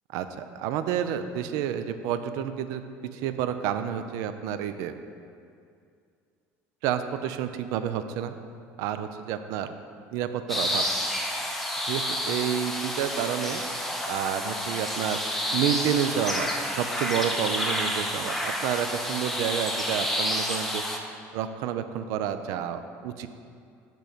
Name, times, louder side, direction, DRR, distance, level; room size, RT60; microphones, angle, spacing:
voice 1, 0.1-2.8 3.1-4.9 6.8-8.4 8.8-9.7 10.1-10.8 11.9-13.7 14.1-15.2 15.5-16.5 16.8-20.8 21.3-23.3, right 9 dB, 75° right, 10 dB, 0.3 m, -29 dB
sound 1, 10.5-21.0, equal, 5° left, 0.5 m, -29 dB
6.8 x 3.1 x 5.0 m, 2.4 s
cardioid pair, 120°, 6 cm